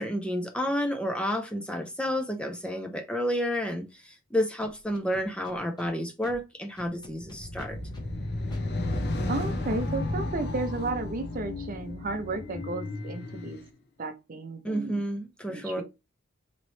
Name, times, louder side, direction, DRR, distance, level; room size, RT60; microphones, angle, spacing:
voice 1, 0.0-7.8 14.6-15.8, equal, 5° left, 0.5 m, -30 dB
Scratching (performance technique), 4.6-5.9 6.2-6.3 6.7-8.0 8.5-8.6, left 1 dB, 20° left, 0.9 m, -47 dB
sound 1, 7.1-13.6, left 2 dB, 55° left, 0.8 m, -33 dB
voice 2, 9.3-13.6 14.0-15.0 15.5-15.8, right 3 dB, 40° right, 0.6 m, -33 dB
4.0 x 3.0 x 3.1 m
head